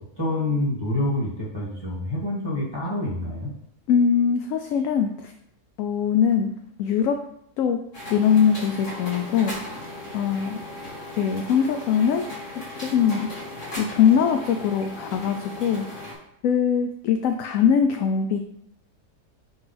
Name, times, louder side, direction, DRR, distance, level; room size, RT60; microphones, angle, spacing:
voice 1, 0.2-3.5, left 1 dB, 15° left, -8 dB, 2.5 m, -27 dB
voice 2, 3.9-5.3 5.8-6.5 6.8-7.2 7.6-7.8 8.1-9.6 10.1-10.6 11.2-12.2 12.8-13.3 13.8-15.9 16.4-18.4, left 7 dB, 70° left, 6 dB, 0.8 m, -21 dB
sound 1, 7.9-16.1, left 1 dB, 45° left, 2.9 m, -37 dB
8.0 x 4.6 x 3.3 m, 0.73 s
omnidirectional pair, 1.7 m